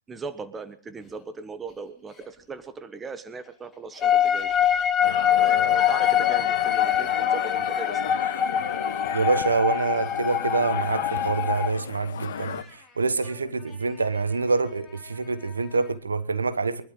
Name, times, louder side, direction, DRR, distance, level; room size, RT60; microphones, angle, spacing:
voice 1, 0.1-4.5 5.3-8.2, right 4 dB, 15° right, 1.3 m, -38 dB
Laughter, 0.5-2.6 3.0-15.9, left 5 dB, 10° left, 4.6 m, -51 dB
sound 1, 4.0-11.7, left 10 dB, 25° left, 0.9 m, -24 dB
sound 2, 5.0-12.6, left 8 dB, 70° left, 1.0 m, -34 dB
voice 2, 9.1-12.6 13.0-16.8, right 4 dB, 85° right, 1.2 m, -26 dB
23.0 x 12.0 x 3.8 m
hypercardioid pair, 115°, 0 cm